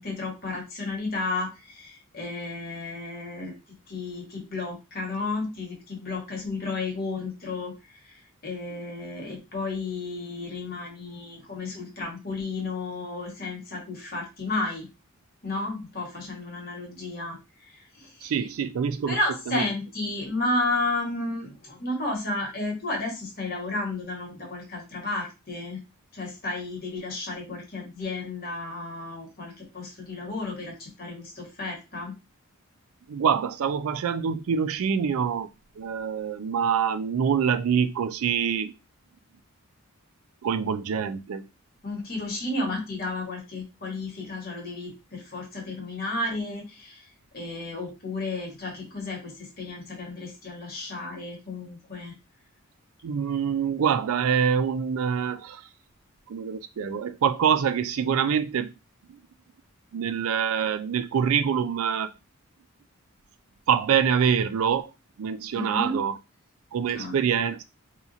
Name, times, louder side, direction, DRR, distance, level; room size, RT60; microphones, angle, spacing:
voice 1, 0.0-3.5 3.9-7.7 8.0-14.9 15.4-17.4 17.6-18.3 19.1-25.8 26.1-32.1 41.8-47.1 47.3-52.1 65.5-66.0 66.9-67.1, left 2 dB, 45° left, 1.2 m, -32 dB
voice 2, 18.2-19.2 19.5-19.7 33.1-35.5 35.8-38.7 40.4-41.5 53.0-55.7 56.3-58.7 59.1-59.2 59.9-62.1 63.7-64.9 65.2-66.2 66.7-67.6, right 7 dB, 70° right, 0.4 m, -25 dB
2.8 x 2.4 x 3.8 m
head